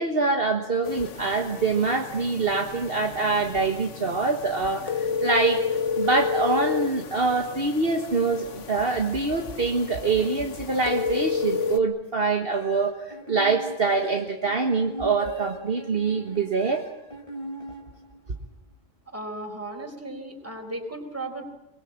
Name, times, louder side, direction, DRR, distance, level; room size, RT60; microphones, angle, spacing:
voice 1, 0.0-5.6 6.0-16.8, right 4 dB, 50° right, 3 dB, 1.7 m, -25 dB
sound 1, 0.8-11.8, left 6 dB, 70° left, 1.4 m, -31 dB
sound 2, 12.5-18.4, right 1 dB, 25° left, 3.7 m, -39 dB
voice 2, 19.1-21.5, right 2 dB, 10° right, 4 dB, 4.4 m, -35 dB
23.5 x 22.0 x 8.8 m, 0.90 s
omnidirectional pair, 1.3 m